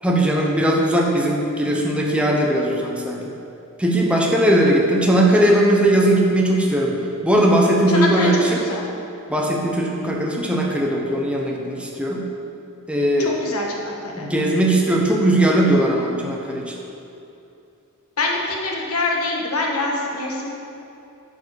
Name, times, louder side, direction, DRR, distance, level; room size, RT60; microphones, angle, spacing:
voice 1, 0.0-3.2 3.8-7.0 7.2-8.7 9.3-12.3 12.9-13.3 14.2-16.7, right 1 dB, 5° right, -2 dB, 1.0 m, -19 dB
voice 2, 7.9-8.3 8.6-8.9 10.0-10.1 13.2-14.3 18.2-20.5, left 2 dB, 85° left, -1 dB, 1.4 m, -25 dB
9.2 x 5.0 x 6.5 m, 2.7 s
head